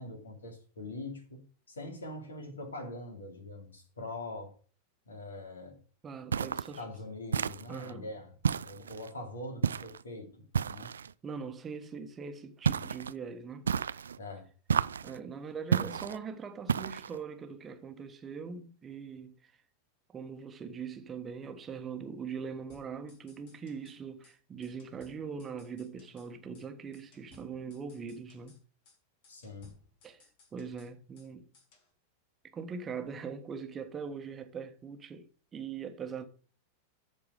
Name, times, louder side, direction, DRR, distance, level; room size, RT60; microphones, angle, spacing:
voice 1, 0.0-4.5 5.1-5.8 6.8-8.3 8.6-10.5 10.7-10.9 14.2-14.5 29.3-29.7, left 2 dB, 70° left, 2.7 m, -43 dB
voice 2, 6.0-6.8 7.7-8.1 11.2-13.7 15.0-19.5 20.1-28.6 30.0-30.2 30.5-31.5 32.5-36.2, right 6 dB, 20° right, 1.4 m, -41 dB
sound 1, 6.3-6.8 7.3-7.9 8.4-9.1 9.6-10.0 10.5-11.1 12.6-13.1 13.7-14.2 14.7-15.2 15.7-16.2 16.7-17.2, right 7 dB, 70° right, 0.3 m, -31 dB
sound 2, 22.7-24.0 24.2-24.4 24.6-26.3 26.5-26.7 26.9-28.6 28.8-29.0 29.2-31.3 31.5-31.9, left 4 dB, 50° left, 3.4 m, -62 dB
13.5 x 4.5 x 5.1 m
figure-of-eight pair, 90°, 0 cm